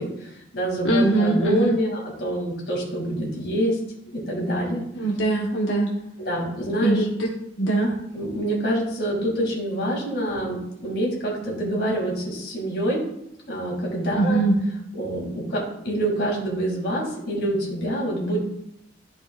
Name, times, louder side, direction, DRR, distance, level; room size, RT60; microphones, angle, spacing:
voice 1, 0.0-3.8 4.1-4.8 6.2-7.0 8.1-13.0 13.5-14.4 15.0-18.4, right 1 dB, 60° left, -2 dB, 2.3 m, -26 dB
voice 2, 0.8-1.8 4.9-5.9 6.8-7.3 7.6-8.0 14.1-14.6, right 2 dB, 90° left, -2 dB, 1.0 m, -22 dB
11.5 x 4.8 x 2.3 m, 0.82 s
head